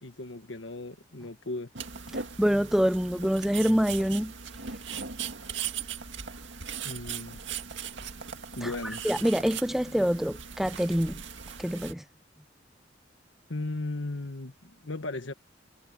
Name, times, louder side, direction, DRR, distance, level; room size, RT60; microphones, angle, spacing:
voice 1, 0.0-1.7 6.8-7.4 7.7-7.8 8.6-9.1 13.5-15.3, left 2 dB, 85° left, 1.5 m, -36 dB
sound 1, 1.7-11.9, right 7 dB, 75° right, 2.1 m, -39 dB
voice 2, 2.1-4.3 8.6-8.7 9.0-11.2 11.6-12.0, equal, ahead, 0.3 m, -26 dB
head